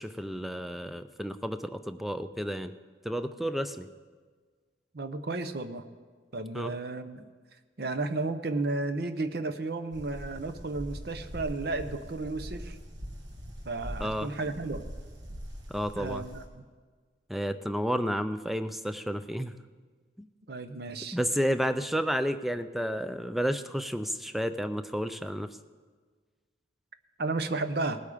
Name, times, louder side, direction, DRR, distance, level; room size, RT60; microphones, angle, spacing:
voice 1, 0.0-2.7 3.0-3.9 6.5-6.7 14.0-14.3 15.7-16.2 17.3-19.6 20.2-20.3 21.1-25.6, equal, ahead, 10 dB, 0.4 m, -31 dB
voice 2, 4.9-5.8 6.3-7.2 7.8-12.8 13.6-14.8 16.0-16.6 20.5-21.2 27.2-28.0, right 3 dB, 55° right, 10 dB, 0.7 m, -33 dB
sound 1, 9.9-16.4, equal, 70° right, 1.7 m, -42 dB
19.0 x 8.4 x 5.0 m, 1.5 s
head